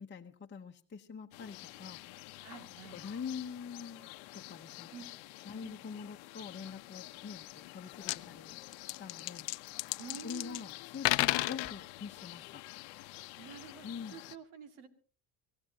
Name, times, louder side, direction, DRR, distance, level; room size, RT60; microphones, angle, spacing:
voice 1, 0.0-2.0 2.9-5.0 5.5-8.6 9.0-9.5 10.2-12.6 13.8-14.2, left 6 dB, 25° left, 2 dB, 0.9 m, -45 dB
sound 1, 1.3-14.4, left 21 dB, 90° left, 0.9 m, -49 dB
voice 2, 2.4-3.0 4.9-5.1 5.6-5.8 10.0-10.7 13.4-14.9, right 8 dB, 80° right, 8 dB, 2.4 m, -49 dB
sound 2, 7.6-7.7 7.9-8.2 8.7-10.6 10.9-11.7, left 20 dB, 60° left, 0.7 m, -32 dB
24.5 x 16.5 x 2.8 m, 0.38 s
supercardioid pair, 90°, 48 cm